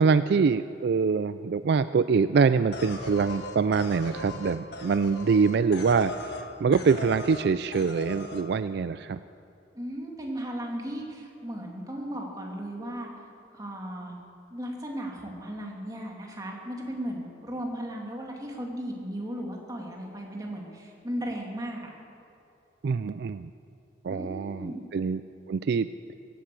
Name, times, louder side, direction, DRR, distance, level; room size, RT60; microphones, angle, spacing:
voice 1, 0.0-6.1 6.6-9.2 22.8-23.5 24.0-25.2 25.5-25.9, right 5 dB, 60° right, 13 dB, 0.3 m, -24 dB
sound 1, 2.7-6.5 6.7-7.4 7.7-8.4, left 2 dB, 60° left, 1.5 m, -39 dB
voice 2, 9.7-13.1 13.5-14.1 14.5-21.9 24.1-24.8, equal, 20° right, -1 dB, 2.5 m, -36 dB
17.0 x 11.0 x 7.7 m, 2.7 s
head